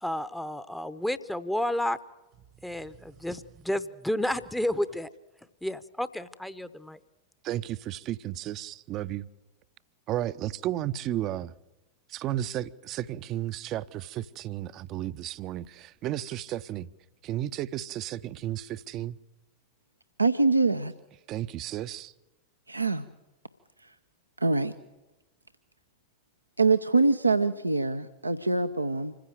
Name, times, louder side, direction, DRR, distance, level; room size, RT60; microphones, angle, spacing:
voice 1, 0.0-2.0 2.6-5.1 5.6-7.0, left 1 dB, 5° left, 0.8 m, -31 dB
voice 2, 7.4-9.3 10.1-11.5 12.1-16.9 17.2-19.2 21.3-22.1, right 13 dB, 35° right, 0.6 m, -33 dB
voice 3, 20.2-20.9 22.7-23.0 24.4-24.7 26.6-29.2, right 3 dB, 85° right, 0.7 m, -24 dB
26.0 x 15.5 x 7.8 m
figure-of-eight pair, 90°, 0 cm